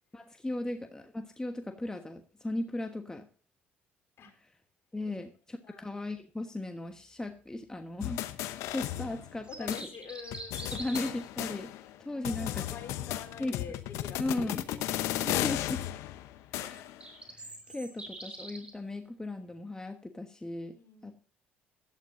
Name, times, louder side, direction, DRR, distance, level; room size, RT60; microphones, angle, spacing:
voice 1, 0.1-3.3 4.4-4.5 4.9-8.2 8.7-9.9 10.7-12.6 13.4-13.5 14.2-14.6 15.2-15.8 16.5-16.8 17.3-20.8 21.0-21.1, left 2 dB, 10° left, 6 dB, 1.3 m, -37 dB
sound 1, 8.0-9.4 9.7-9.8 10.3-12.0 12.2-17.0, left 14 dB, 70° left, 0.9 m, -35 dB
sound 2, 9.3-11.3 16.6-18.7, right 2 dB, 20° right, 3.5 m, -45 dB
voice 2, 9.5-10.9 12.3-14.9 20.7-21.1, left 6 dB, 50° left, 4 dB, 3.7 m, -46 dB
16.5 x 11.5 x 2.6 m, 0.37 s
hypercardioid pair, 60°, 5 cm